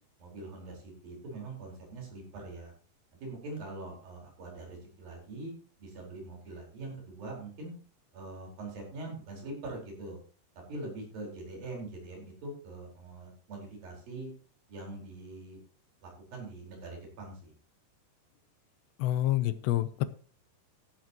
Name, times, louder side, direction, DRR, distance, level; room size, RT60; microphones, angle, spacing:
voice 1, 0.2-2.7 3.2-5.5 5.8-7.7 8.1-10.2 10.7-14.3 14.7-15.6 16.0-17.5, right 2 dB, 55° right, 6.4 m, -43 dB
voice 2, 19.0-20.1, left 14 dB, 90° left, 3.0 m, -27 dB
14.5 x 12.0 x 3.1 m
omnidirectional pair, 5.0 m